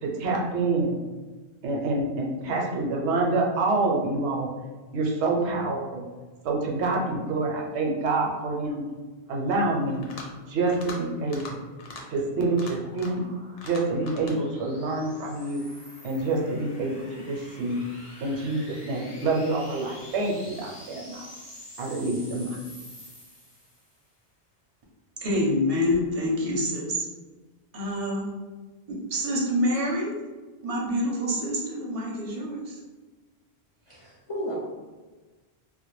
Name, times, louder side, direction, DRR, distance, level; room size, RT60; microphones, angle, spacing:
voice 1, 0.0-1.0 1.6-4.5 4.9-6.0 6.4-8.8 9.3-10.0 10.5-11.6 12.1-13.2 13.6-15.6 16.0-17.8 18.2-21.3 21.8-22.5, right 2 dB, 85° right, -1 dB, 0.9 m, -27 dB
sound 1, 9.9-10.4 10.7-11.0 11.3-11.5 11.8-12.0 12.5-13.3 13.6-14.4, left 3 dB, 70° left, 0.8 m, -41 dB
sound 2, 12.0-24.0, left 1 dB, 30° left, 0.9 m, -48 dB
voice 2, 25.2-27.1 27.7-28.2 28.9-30.1 30.6-32.8, left 1 dB, 45° right, -3 dB, 0.5 m, -27 dB
voice 3, 33.9-34.5, equal, 55° left, -7 dB, 0.3 m, -34 dB
2.2 x 2.1 x 3.0 m, 1.3 s
omnidirectional pair, 1.1 m